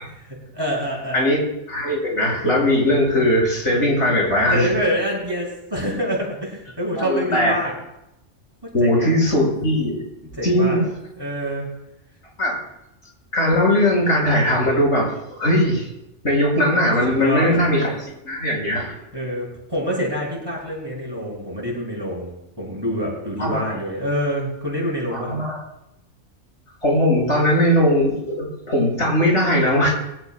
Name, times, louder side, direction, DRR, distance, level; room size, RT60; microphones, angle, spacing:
voice 1, 0.5-1.3 4.5-7.7 8.8-9.1 10.4-10.8 11.2-11.7 17.1-17.9 19.1-25.4, equal, 20° right, -4 dB, 6.3 m, -26 dB
voice 2, 1.7-4.7 7.0-7.5 8.7-10.0 10.4-10.8 12.4-12.5 13.3-15.9 16.2-17.9 18.2-18.9 23.4-23.6 25.1-25.5 26.8-29.9, left 1 dB, 70° left, -3 dB, 6.2 m, -19 dB
22.0 x 17.5 x 2.2 m, 0.86 s
omnidirectional pair, 1.3 m